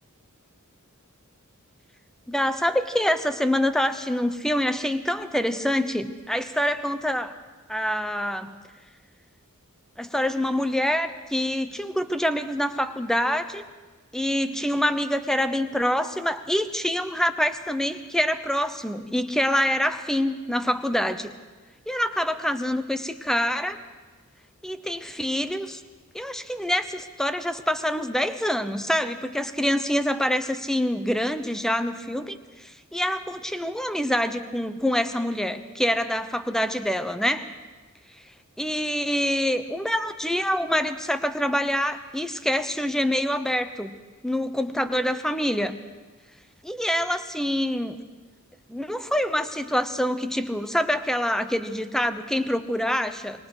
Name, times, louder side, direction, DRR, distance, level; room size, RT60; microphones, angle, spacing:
voice 1, 2.3-7.3 7.7-8.5 10.0-13.6 14.1-21.3 21.9-23.8 24.6-25.8 26.1-37.5 38.6-43.9 44.2-45.8 46.6-48.0 48.7-53.5, equal, ahead, 10 dB, 0.8 m, -26 dB
25.0 x 22.0 x 4.9 m, 1.3 s
head